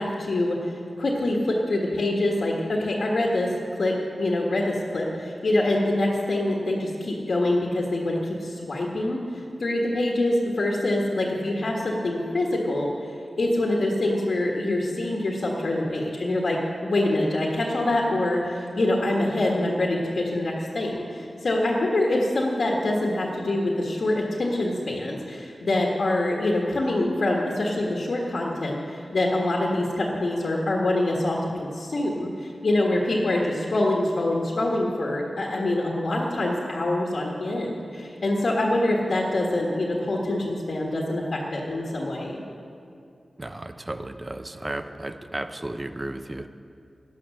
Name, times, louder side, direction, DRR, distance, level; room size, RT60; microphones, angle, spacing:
voice 1, 0.0-3.5 3.8-9.2 9.6-12.9 13.4-42.3, left 1 dB, 70° left, -1 dB, 1.6 m, -25 dB
voice 2, 43.4-46.5, right 1 dB, 30° right, 10 dB, 0.7 m, -34 dB
11.5 x 10.5 x 6.3 m, 2.4 s
cardioid pair, 40°, 0 cm